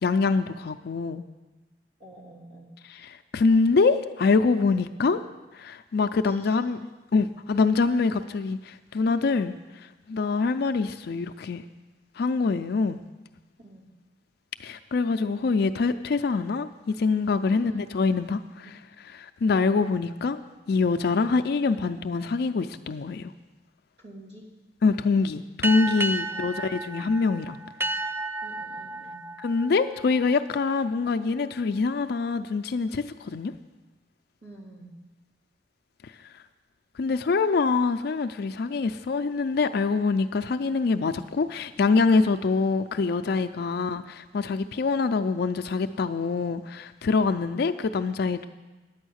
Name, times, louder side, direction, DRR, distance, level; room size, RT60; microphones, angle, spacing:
voice 1, 0.0-1.2 3.3-5.2 5.5-6.8 7.1-9.5 10.1-11.6 12.2-13.0 14.6-18.7 19.4-20.4 20.7-23.3 24.8-27.6 29.4-33.5 37.0-48.5, left 4 dB, 65° left, 9 dB, 0.4 m, -24 dB
voice 2, 2.0-2.7 6.2-6.6 13.6-13.9 17.5-17.8 18.6-18.7 24.0-24.5 26.3-26.6 28.4-29.3 34.4-34.9 43.6-43.8 44.8-44.9 47.2-47.6, right 1 dB, 85° right, -4 dB, 3.1 m, -48 dB
sound 1, 25.6-30.7, right 2 dB, 15° right, 0.3 m, -32 dB
9.5 x 9.1 x 6.4 m, 1.1 s
head